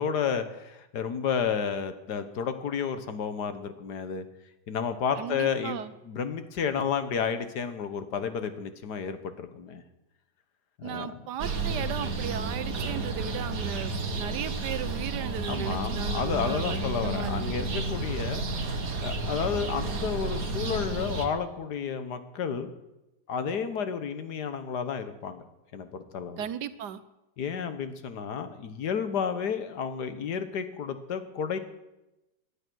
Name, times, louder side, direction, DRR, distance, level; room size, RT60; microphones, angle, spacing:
voice 1, 0.0-4.3 4.7-9.8 10.8-11.1 15.5-18.4 19.0-22.7 23.3-25.5 25.7-26.4 27.4-31.6, left 7 dB, 70° left, 10 dB, 1.7 m, -31 dB
voice 2, 5.1-5.9 10.8-17.8 26.4-27.0, right 9 dB, 75° right, 13 dB, 1.4 m, -36 dB
sound 1, 11.4-21.2, right 3 dB, 55° right, 1.9 m, -31 dB
18.0 x 10.5 x 6.2 m, 0.96 s
omnidirectional pair, 1.8 m